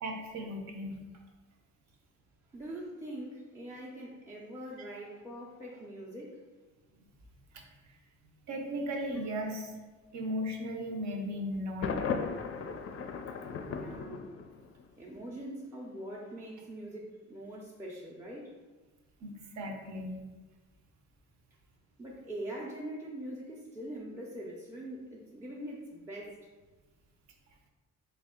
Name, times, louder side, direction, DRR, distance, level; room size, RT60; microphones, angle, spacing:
voice 1, 0.0-1.0 7.5-7.6 7.9-8.0 8.5-9.7 10.1-11.9 19.2-20.2, equal, 65° right, 2 dB, 0.7 m, -36 dB
voice 2, 2.5-6.4 10.0-10.1 13.7-14.3 15.0-18.5 22.0-26.4, right 1 dB, 10° right, -4 dB, 0.5 m, -43 dB
Thunder, 11.8-14.8, left 5 dB, 50° left, 0.4 m, -36 dB
3.4 x 2.4 x 3.6 m, 1.2 s
cardioid pair, 90°, 30 cm